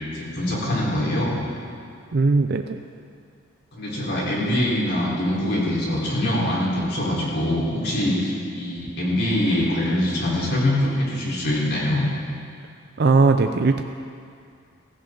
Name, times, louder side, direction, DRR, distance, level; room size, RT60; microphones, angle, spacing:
voice 1, 0.1-1.3 3.7-12.1, left 1 dB, 55° left, -6 dB, 4.2 m, -23 dB
voice 2, 2.1-2.8 13.0-13.8, right 3 dB, 55° right, 6 dB, 0.5 m, -18 dB
16.5 x 15.5 x 3.9 m, 2.3 s
head